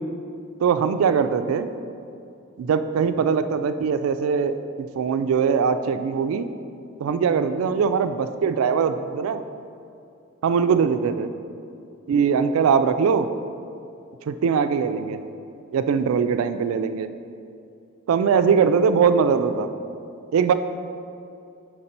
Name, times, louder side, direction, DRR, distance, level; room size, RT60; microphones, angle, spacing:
voice 1, 0.6-1.7 2.6-6.5 7.0-9.4 10.4-11.3 12.1-13.3 14.3-15.2 15.7-17.1 18.1-19.7 20.3-20.5, right 6 dB, 90° right, 11 dB, 0.3 m, -21 dB
5.2 x 4.5 x 4.3 m, 2.5 s
head